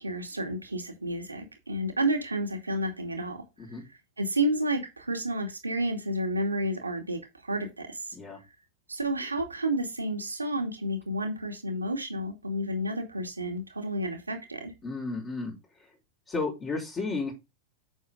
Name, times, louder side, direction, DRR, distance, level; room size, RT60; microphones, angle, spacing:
voice 1, 0.0-3.4 4.2-7.2 7.5-8.0 8.9-14.7, right 1 dB, 80° right, 2.5 m, -30 dB
voice 2, 14.8-15.5 16.3-17.3, left 3 dB, 25° left, 4.6 m, -32 dB
8.4 x 6.7 x 3.7 m
figure-of-eight pair, 90°, 0 cm